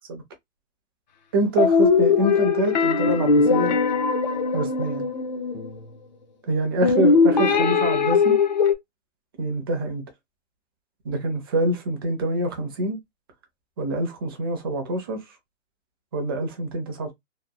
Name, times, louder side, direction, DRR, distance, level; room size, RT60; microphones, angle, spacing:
voice 1, 1.3-3.8 4.5-5.1 6.5-8.4 9.4-10.0 11.0-13.0 13.8-15.2 16.1-17.1, right 1 dB, 20° right, 0.5 m, -25 dB
sound 1, 1.6-5.8 6.8-8.7, left 5 dB, 40° left, 0.5 m, -20 dB
2.8 x 2.1 x 2.2 m
hypercardioid pair, 155°, 36 cm